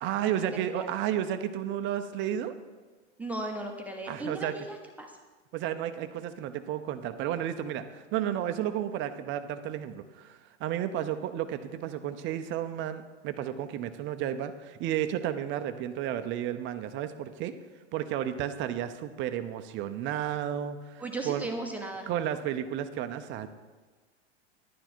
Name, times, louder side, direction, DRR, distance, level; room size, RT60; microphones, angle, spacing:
voice 1, 0.0-2.5 4.1-4.7 5.5-17.5 17.9-21.5 22.1-23.5, right 10 dB, 35° right, 9 dB, 0.6 m, -32 dB
voice 2, 0.5-0.9 3.2-5.1 21.0-22.1, right 2 dB, 5° right, 1 dB, 1.0 m, -36 dB
11.0 x 9.0 x 4.4 m, 1.3 s
hypercardioid pair, 120°, 35 cm